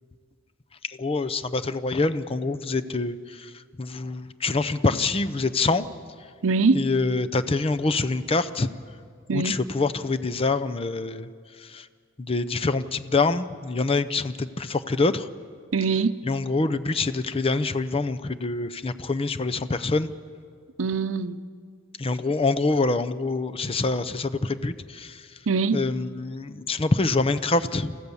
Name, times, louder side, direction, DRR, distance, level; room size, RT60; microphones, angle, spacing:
voice 1, 0.8-5.9 6.2-6.3 6.7-8.7 9.3-11.9 12.2-15.3 16.3-20.1 22.0-25.4 25.7-28.0, left 3 dB, 30° left, 11 dB, 0.6 m, -26 dB
voice 2, 6.4-6.8 9.3-9.6 15.7-16.2 20.8-21.4 25.5-25.8, right 4 dB, 85° right, 13 dB, 0.7 m, -23 dB
28.5 x 15.0 x 7.1 m, 2.1 s
head